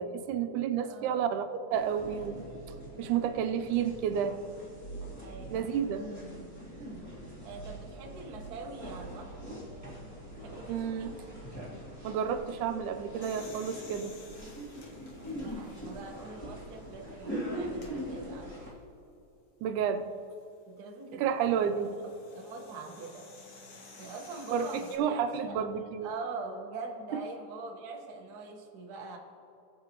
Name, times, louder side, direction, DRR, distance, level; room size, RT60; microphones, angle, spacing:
voice 1, 0.0-2.4 3.0-4.4 5.5-6.1 10.7-11.1 12.0-14.1 19.6-20.1 21.1-21.9 24.5-26.1, right 8 dB, 90° right, 9 dB, 2.1 m, -31 dB
voice 2, 0.8-1.3 5.2-5.9 7.4-9.6 10.4-11.2 15.3-18.8 20.7-23.2 24.0-29.2, right 3 dB, 55° right, 1 dB, 1.1 m, -44 dB
sound 1, 1.7-18.7, right 1 dB, 5° left, 2.3 m, -43 dB
sound 2, 8.2-14.5, equal, 35° right, 3.0 m, -54 dB
sound 3, 13.2-16.1 16.7-16.8 17.7-17.9 20.1-25.0, left 3 dB, 85° left, 0.9 m, -53 dB
21.5 x 7.6 x 3.0 m, 2.9 s
omnidirectional pair, 3.5 m